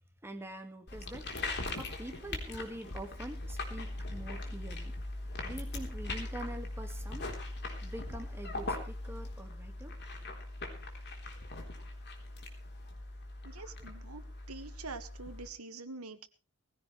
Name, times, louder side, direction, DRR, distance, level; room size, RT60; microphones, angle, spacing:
voice 1, 0.2-1.3 1.8-5.0 5.4-7.4 7.8-9.9 10.2-10.3 13.8-13.9, right 1 dB, 10° right, 5 dB, 1.9 m, -45 dB
sound 1, 0.9-15.5, left 2 dB, 50° left, 3.8 m, -40 dB
voice 2, 13.4-14.2 14.5-16.3, right 3 dB, 75° right, 9 dB, 1.7 m, -45 dB
19.5 x 16.0 x 3.3 m, 0.33 s
head